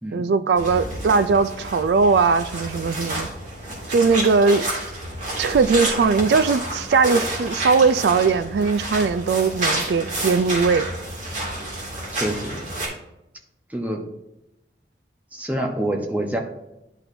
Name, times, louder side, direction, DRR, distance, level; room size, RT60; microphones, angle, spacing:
voice 1, 0.1-3.3 3.9-4.7 5.4-10.9, right 4 dB, 70° right, 13 dB, 0.3 m, -19 dB
sound 1, 0.6-12.9, right 1 dB, 45° right, 2.2 m, -29 dB
Explosion, 5.4-6.6, right 1 dB, 90° right, 1.9 m, -41 dB
voice 2, 12.1-12.6 13.7-14.0 15.3-16.4, right 1 dB, 10° right, 1 dB, 0.9 m, -26 dB
11.5 x 4.3 x 2.7 m, 0.90 s
head